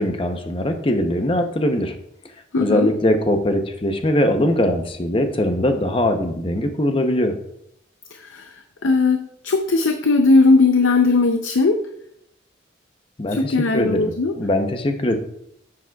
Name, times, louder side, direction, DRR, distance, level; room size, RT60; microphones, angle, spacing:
voice 1, 0.0-1.9 2.6-7.3 13.2-15.2, left 1 dB, 30° left, 6 dB, 0.7 m, -21 dB
voice 2, 2.5-2.9 8.2-8.5 8.8-11.8 13.4-14.3, left 3 dB, 90° left, 6 dB, 0.6 m, -18 dB
9.7 x 7.6 x 2.3 m, 0.72 s
head